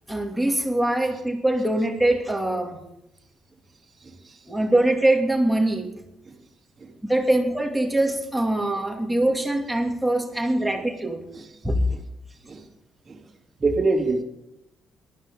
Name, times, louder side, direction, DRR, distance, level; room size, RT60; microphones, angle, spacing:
voice 1, 0.1-2.8 4.5-6.0 7.1-11.2 11.6-11.8, right 1 dB, 5° right, 1 dB, 2.4 m, -23 dB
voice 2, 4.0-4.4 6.3-6.4 6.8-6.9 11.3-11.5 12.5-12.7 13.1-13.2 13.6-14.2, right 3 dB, 30° right, -3 dB, 3.0 m, -25 dB
19.0 x 12.5 x 3.8 m, 0.85 s
cardioid pair, 90°, 0 cm